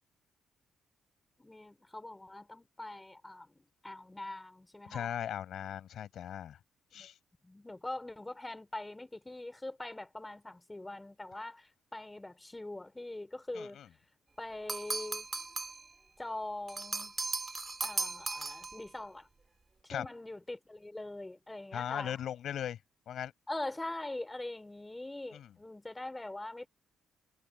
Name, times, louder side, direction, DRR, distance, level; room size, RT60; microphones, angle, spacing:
voice 1, 1.4-5.1 6.9-7.1 7.4-13.8 14.4-15.3 16.2-17.1 17.8-19.3 19.9-22.2 23.5-26.7, left 2 dB, 15° left, 5.0 m, -43 dB
voice 2, 4.9-6.6 6.9-7.1 13.5-13.9 19.9-20.1 21.7-22.8 23.1-23.3 25.3-25.5, left 10 dB, 70° left, 7.9 m, -38 dB
sound 1, 14.7-15.9 16.7-18.9, right 3 dB, 25° right, 2.7 m, -37 dB
cardioid pair, 90°, 0 cm